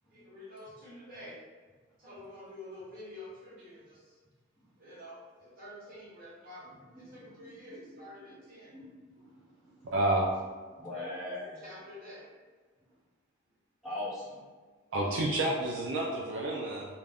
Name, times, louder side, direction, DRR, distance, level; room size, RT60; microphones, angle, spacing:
voice 1, 0.1-1.4 2.0-4.1 4.8-8.7 10.8-12.2 13.8-13.9 14.9-15.4, left 1 dB, 50° right, -8 dB, 1.0 m, -49 dB
voice 2, 6.9-7.5 8.7-8.8 9.1-9.9 10.8-11.5 13.8-14.4, left 1 dB, ahead, -10 dB, 0.6 m, -41 dB
voice 3, 9.9-10.3 14.9-16.9, right 1 dB, 70° right, -1 dB, 0.3 m, -29 dB
2.4 x 2.1 x 3.4 m, 1.4 s
head